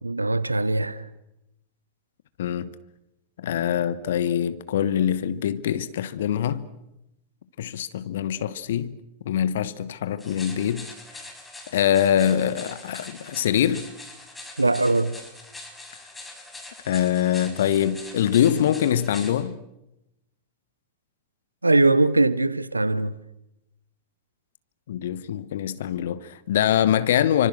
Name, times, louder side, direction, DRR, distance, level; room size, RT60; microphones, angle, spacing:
voice 1, 0.0-1.1 14.6-15.2 21.6-23.1, right 2 dB, 80° right, 1.0 m, -21 dB
voice 2, 2.4-2.7 3.4-6.7 7.6-9.0 9.2-10.9 11.1-11.2 11.7-13.9 16.8-19.6 24.9-27.5, left 10 dB, 60° left, 1.1 m, -24 dB
sound 1, 10.2-19.3, left 2 dB, 10° left, 6.1 m, -43 dB
28.5 x 25.5 x 6.5 m
figure-of-eight pair, 90°, 0 cm